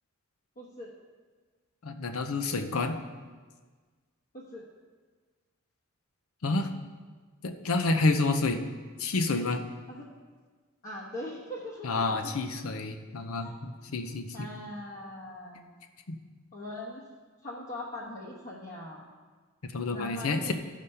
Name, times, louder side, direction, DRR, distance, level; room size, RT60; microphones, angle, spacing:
voice 1, 0.6-0.9 4.3-4.6 9.9-10.1 10.8-12.0 13.4-13.6 14.3-15.7 16.5-17.0 17.4-19.0 19.9-20.5, left 1 dB, 45° left, -6 dB, 1.2 m, -41 dB
voice 2, 1.8-3.0 6.4-6.7 7.4-8.6 9.0-9.6 11.8-14.5 16.1-16.2 19.7-20.5, left 3 dB, 85° left, 7 dB, 0.7 m, -29 dB
12.5 x 5.1 x 5.5 m, 1.5 s
head